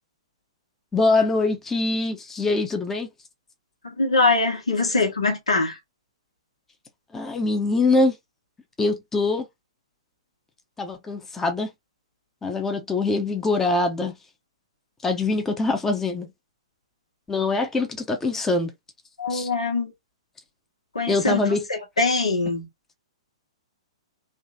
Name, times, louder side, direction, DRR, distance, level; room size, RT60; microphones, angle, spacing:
voice 1, 0.9-3.1 7.1-8.2 8.8-9.5 10.8-11.7 12.4-14.1 15.0-16.3 17.3-18.7 19.3-19.5 21.1-21.6, left 3 dB, 10° left, 0.8 m, -23 dB
voice 2, 3.8-5.8 19.2-19.9 20.9-22.7, left 3 dB, 80° left, 1.6 m, -23 dB
3.5 x 2.7 x 2.7 m
figure-of-eight pair, 115°, 3 cm